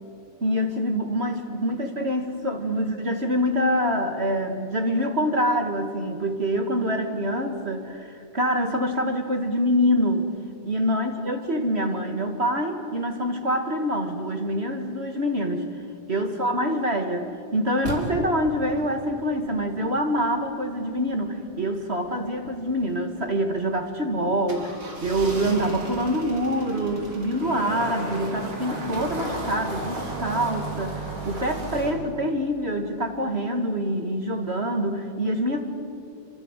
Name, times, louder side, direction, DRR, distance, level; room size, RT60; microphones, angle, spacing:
voice 1, 0.4-10.3 10.6-15.8 16.1-35.6, equal, 25° right, 5 dB, 1.7 m, -25 dB
sound 1, 17.8-31.9, right 2 dB, 40° right, 4.7 m, -35 dB
26.5 x 26.0 x 8.2 m, 2.5 s
omnidirectional pair, 3.7 m